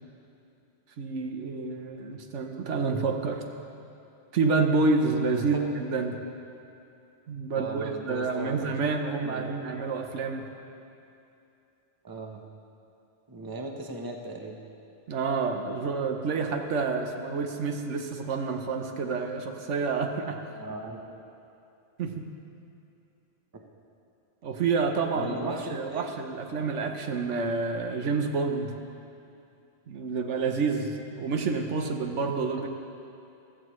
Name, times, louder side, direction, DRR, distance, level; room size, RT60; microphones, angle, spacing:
voice 1, 1.0-3.4 4.3-6.2 7.3-10.5 15.1-20.4 22.0-22.3 24.4-28.7 29.9-32.7, right 4 dB, 80° right, 4 dB, 1.2 m, -28 dB
voice 2, 5.4-5.7 7.5-8.7 9.2-9.8 12.0-12.4 13.3-14.6 20.5-21.3 23.5-23.6 25.1-26.1 26.6-26.7 31.8-31.9, right 2 dB, 20° right, 2 dB, 0.8 m, -38 dB
15.5 x 13.5 x 3.2 m, 2.7 s
omnidirectional pair, 1.2 m